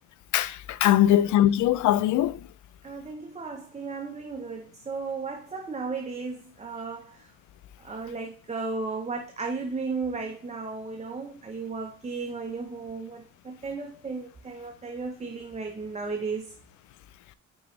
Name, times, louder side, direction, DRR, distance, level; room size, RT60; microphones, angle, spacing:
voice 1, 0.3-2.4, left 12 dB, 75° left, 0.5 m, -21 dB
voice 2, 2.8-7.3 7.8-16.5, right 4 dB, 20° right, 0.8 m, -35 dB
6.2 x 5.1 x 3.2 m
cardioid pair, 90°, 30 cm